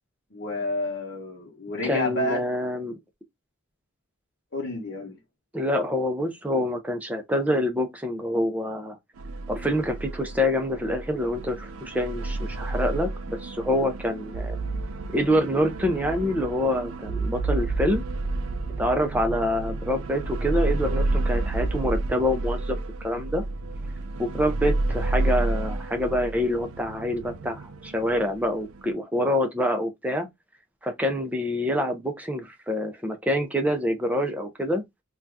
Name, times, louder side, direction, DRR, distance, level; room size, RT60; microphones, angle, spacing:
voice 1, 0.3-2.4 4.5-5.2, left 1 dB, 55° left, 1.0 m, -30 dB
voice 2, 1.8-3.0 5.5-9.0 9.5-14.6 15.1-18.0 18.8-23.4 24.2-30.3 30.8-34.8, left 1 dB, 5° right, 0.5 m, -26 dB
sound 1, 9.2-28.9, right 2 dB, 85° right, 0.5 m, -30 dB
2.7 x 2.3 x 3.3 m
head